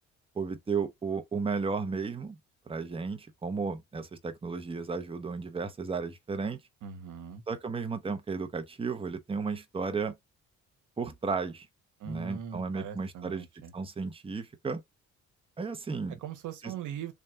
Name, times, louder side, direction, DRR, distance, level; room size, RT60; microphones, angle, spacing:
voice 1, 0.4-2.4 2.7-6.6 7.5-10.1 11.0-11.7 12.1-13.5 13.7-14.8 15.6-16.2 16.6-16.7, right 4 dB, 20° right, 0.7 m, -34 dB
voice 2, 6.8-7.4 12.0-13.7 16.2-17.1, right 8 dB, 80° right, 0.9 m, -40 dB
3.4 x 2.4 x 4.3 m
cardioid pair, 90°, 30 cm